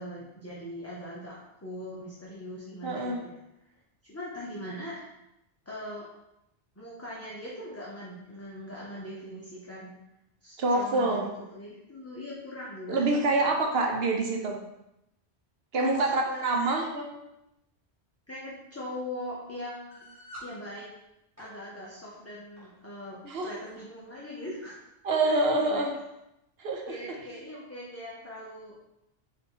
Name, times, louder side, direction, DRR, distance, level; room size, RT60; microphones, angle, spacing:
voice 1, 0.0-3.4 3.7-5.0 5.7-6.1 6.8-9.9 10.4-13.2 15.7-16.7 18.3-20.1 20.4-20.9 21.4-24.9 25.2-25.8 26.9-28.8, left 1 dB, 15° left, -6 dB, 0.6 m, -41 dB
voice 2, 2.8-3.2 10.6-11.3 12.9-14.6 15.7-17.2 23.2-23.5 25.0-25.9 26.6-27.2, right 2 dB, 70° right, 1 dB, 0.9 m, -26 dB
sound 1, 19.9-20.5 21.2-21.5 22.6-22.8 23.4-23.8 24.7-24.8 25.1-25.2 25.9-26.1, equal, 15° right, 1.7 m, -48 dB
4.9 x 2.7 x 3.7 m, 0.87 s
omnidirectional pair, 1.1 m